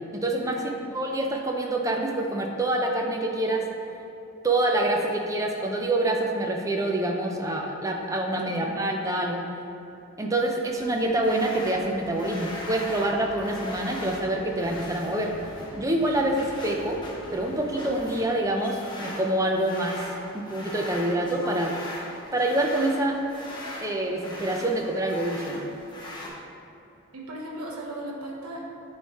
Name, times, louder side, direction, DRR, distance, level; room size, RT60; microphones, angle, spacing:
voice 1, 0.1-0.6 0.9-3.7 4.4-9.4 10.2-15.3 15.7-17.0 17.3-20.1 20.3-21.7 22.3-23.2 23.8-25.6, right 1 dB, 15° right, 1 dB, 0.5 m, -26 dB
voice 2, 8.3-8.8 27.1-28.6, right 1 dB, 85° right, -2 dB, 0.9 m, -37 dB
sound 1, 10.7-18.2, left 1 dB, 75° left, 0.9 m, -46 dB
sound 2, 11.0-26.3, left 1 dB, 20° left, 0.8 m, -40 dB
9.0 x 3.2 x 4.1 m, 2.9 s
head